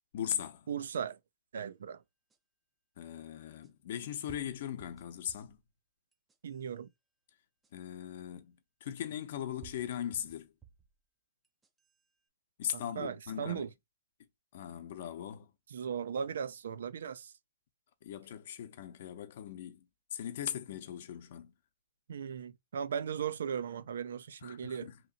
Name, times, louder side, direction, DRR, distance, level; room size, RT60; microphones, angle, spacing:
voice 1, 0.1-0.7 3.0-5.6 7.7-10.5 12.6-13.7 14.5-15.5 18.0-19.8 20.1-21.5 24.4-25.0, left 10 dB, 55° left, 0.7 m, -39 dB
voice 2, 0.7-1.2 1.5-2.0 6.4-6.9 13.0-13.7 15.7-17.3 22.1-24.9, right 7 dB, 80° right, 0.4 m, -37 dB
sound 1, 2.3-2.4 3.6-3.7 4.3-5.6 6.1-6.7 7.6-7.7 9.0-9.1 9.6-10.9 11.4-12.0, right 9 dB, 10° right, 0.4 m, -56 dB
2.9 x 2.8 x 4.0 m
hypercardioid pair, 155°, 0 cm